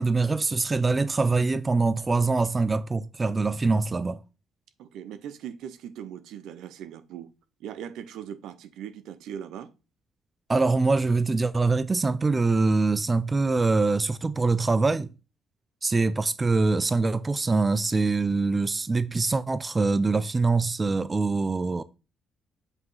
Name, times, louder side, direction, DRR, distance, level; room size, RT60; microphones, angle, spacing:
voice 1, 0.0-4.2 10.5-15.1 15.8-21.8, right 3 dB, 25° right, 0.5 m, -24 dB
voice 2, 4.8-7.3 7.6-9.7, right 9 dB, 85° right, 0.7 m, -39 dB
8.2 x 3.0 x 5.5 m
cardioid pair, 90°, 0 cm